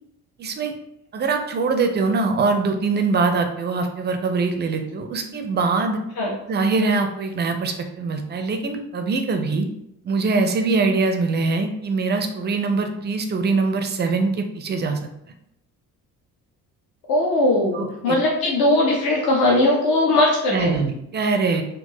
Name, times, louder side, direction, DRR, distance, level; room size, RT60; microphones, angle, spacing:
voice 1, 0.4-0.7 1.1-6.0 6.5-9.7 10.0-15.0 17.7-18.2 20.5-21.6, right 4 dB, 25° right, 5 dB, 0.4 m, -23 dB
voice 2, 17.1-20.8, left 2 dB, 50° left, -2 dB, 0.7 m, -19 dB
3.6 x 2.3 x 2.7 m, 0.80 s
figure-of-eight pair, 45°, 45 cm